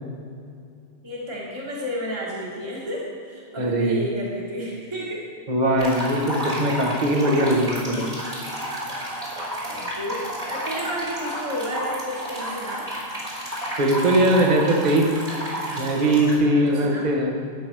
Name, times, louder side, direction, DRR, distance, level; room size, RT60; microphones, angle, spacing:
voice 1, 1.0-5.3 9.7-12.8 16.5-17.1, equal, 25° right, -6 dB, 1.6 m, -32 dB
voice 2, 3.6-4.1 5.5-8.1 13.8-15.1 15.8-17.3, right 1 dB, 40° right, 1 dB, 1.3 m, -20 dB
sound 1, 5.8-16.4, equal, 65° right, 3.0 m, -31 dB
12.0 x 7.9 x 4.7 m, 2.5 s
omnidirectional pair, 1.1 m